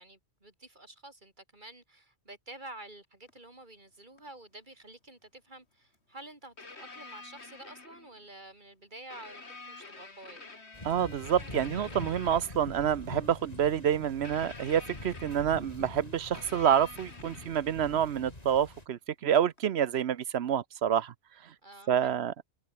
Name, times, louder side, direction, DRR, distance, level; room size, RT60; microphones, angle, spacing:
voice 1, 0.0-9.4 9.7-10.4 21.6-22.2, right 2 dB, 45° right, 3.6 m, -49 dB
sound 1, 3.3-3.4 4.2-4.3 5.9-6.0 6.6-8.2 9.1-12.8 14.2-15.7 16.3-17.8 19.6-19.7, left 3 dB, 75° left, 3.0 m, -48 dB
sound 2, 10.7-18.9, left 2 dB, 35° left, 3.7 m, -44 dB
voice 2, 10.8-21.1 21.9-22.3, right 9 dB, 70° right, 1.0 m, -28 dB
omnidirectional pair, 1.1 m